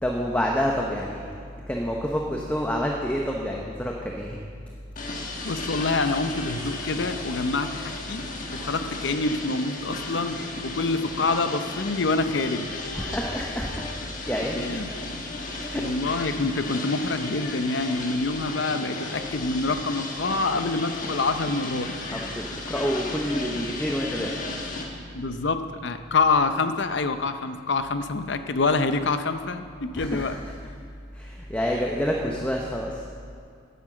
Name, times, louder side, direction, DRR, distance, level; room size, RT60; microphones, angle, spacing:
voice 1, 0.0-1.3 1.7-4.4 12.9-13.8 14.3-14.7 15.6-15.8 22.1-24.6 30.0-30.4 31.1-33.0, equal, 5° left, -1 dB, 0.7 m, -28 dB
sound 1, 5.0-24.9, left 2 dB, 40° left, 1.3 m, -35 dB
voice 2, 5.4-8.2 8.5-12.7 14.5-14.9 15.7-21.9 25.1-30.4 31.7-31.8, left 3 dB, 60° left, 9 dB, 0.6 m, -26 dB
9.5 x 9.5 x 7.7 m, 2.2 s
head